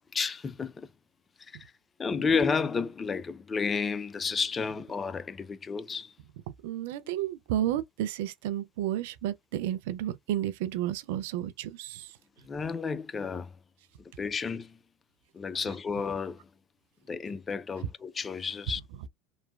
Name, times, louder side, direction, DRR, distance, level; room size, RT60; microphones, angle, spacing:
voice 1, 0.1-0.9 1.6-1.7 2.0-6.1 12.4-13.5 14.2-14.8 15.3-16.4 17.1-18.8, left 5 dB, 25° left, 0.3 m, -31 dB
voice 2, 6.6-12.1, right 12 dB, 70° right, 0.4 m, -32 dB
3.0 x 2.2 x 2.2 m
hypercardioid pair, 80°, 0 cm